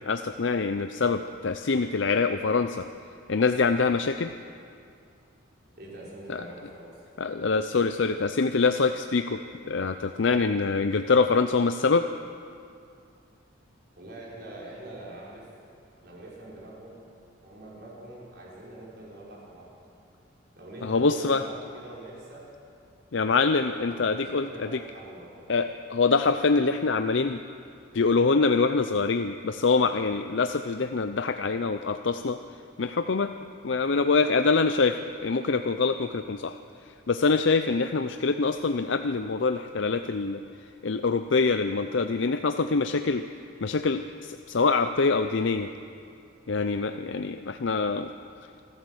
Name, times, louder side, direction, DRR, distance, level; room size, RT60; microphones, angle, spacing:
voice 1, 0.1-2.9 3.3-4.3 6.3-6.4 7.2-12.0 20.8-21.4 23.1-24.8 25.5-27.4 27.9-32.4 32.8-33.3 33.6-36.6 37.1-40.4 40.8-43.2 43.6-45.7 46.5-48.1, left 4 dB, 70° left, 9 dB, 0.6 m, -25 dB
voice 2, 5.8-6.9 14.0-15.5 16.0-17.1 17.4-19.7 20.5-22.5 23.8-25.4, right 1 dB, 55° right, -5 dB, 5.8 m, -44 dB
26.5 x 12.5 x 8.0 m, 2.4 s
head